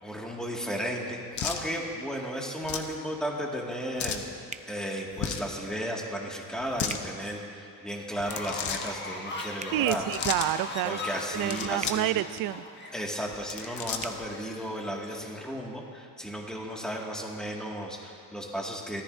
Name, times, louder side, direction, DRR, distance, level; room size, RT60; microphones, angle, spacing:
voice 1, 0.0-4.3 4.7-10.0 10.8-12.2 12.9-19.0, equal, ahead, -2 dB, 2.1 m, -34 dB
sound 1, 1.4-1.6 2.6-2.9 4.0-4.3 5.1-5.5 6.6-7.0 8.2-8.9 9.8-10.5 11.3-12.1 12.4-12.5 13.3-14.3, left 7 dB, 60° left, 1.0 m, -34 dB
sound 2, 4.5-4.7 6.9-7.1 9.5-9.8 11.8-12.0 14.0-14.2, right 5 dB, 20° right, 0.5 m, -39 dB
Fowl, 8.2-15.2, left 2 dB, 35° left, 1.4 m, -40 dB
voice 2, 9.7-11.0 11.3-12.6, right 15 dB, 80° right, 16 dB, 0.5 m, -28 dB
23.0 x 14.5 x 2.7 m, 2.5 s
cardioid pair, 110°, 33 cm